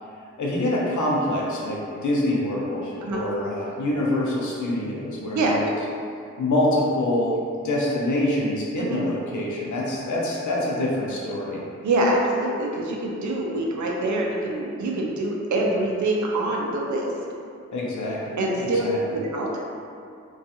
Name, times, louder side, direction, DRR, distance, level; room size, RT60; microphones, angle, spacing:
voice 1, 0.4-5.7 6.4-7.4 7.6-11.6 17.7-19.2, left 1 dB, 85° left, -4 dB, 0.6 m, -25 dB
voice 2, 11.8-17.1 18.4-19.6, right 1 dB, 85° right, -1 dB, 0.5 m, -25 dB
2.4 x 2.3 x 2.7 m, 2.5 s
cardioid pair, 65°, 29 cm